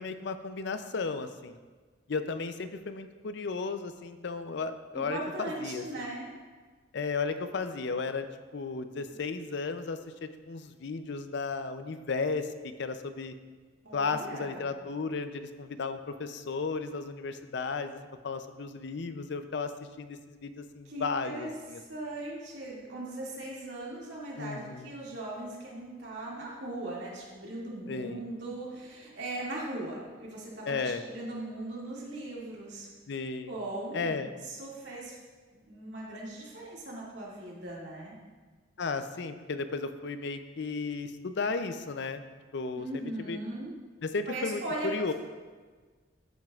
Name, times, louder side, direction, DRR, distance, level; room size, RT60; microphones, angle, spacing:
voice 1, 0.0-1.6 2.1-5.8 6.9-8.3 8.5-13.3 13.9-19.7 20.0-21.8 24.3-24.9 27.9-28.2 30.7-31.0 33.1-33.5 33.9-34.3 38.8-42.2 42.5-42.9 43.3-43.4 44.0-45.1, left 4 dB, 65° left, 10 dB, 0.5 m, -34 dB
voice 2, 4.9-6.3 9.1-9.2 13.8-14.7 20.9-21.5 21.8-32.9 33.5-35.2 35.7-38.1 42.8-43.8 44.3-44.9, right 1 dB, 70° right, -4 dB, 2.2 m, -39 dB
12.5 x 7.4 x 2.4 m, 1.4 s
head